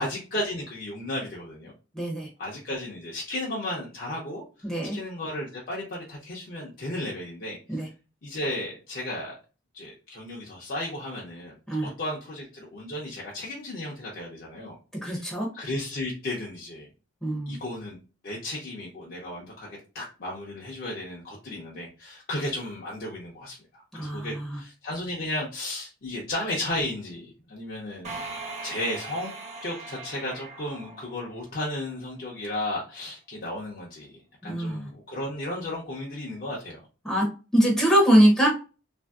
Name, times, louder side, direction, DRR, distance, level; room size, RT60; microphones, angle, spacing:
voice 1, 0.0-1.7 2.4-4.4 4.9-7.8 8.2-9.3 9.7-11.5 11.8-14.8 15.1-15.3 15.5-16.9 17.5-18.0 18.2-28.2 28.6-29.3 29.6-36.8, left 1 dB, 50° left, -3 dB, 0.6 m, -34 dB
voice 2, 1.9-2.3 4.6-5.0 7.7-7.9 11.7-11.9 15.0-15.5 17.2-17.6 23.9-24.6 34.4-34.9 37.0-37.3 37.5-38.5, right 1 dB, ahead, -4 dB, 0.6 m, -22 dB
sound 1, 28.0-31.7, right 3 dB, 35° right, 0.8 m, -39 dB
3.1 x 2.5 x 2.3 m, 0.33 s
head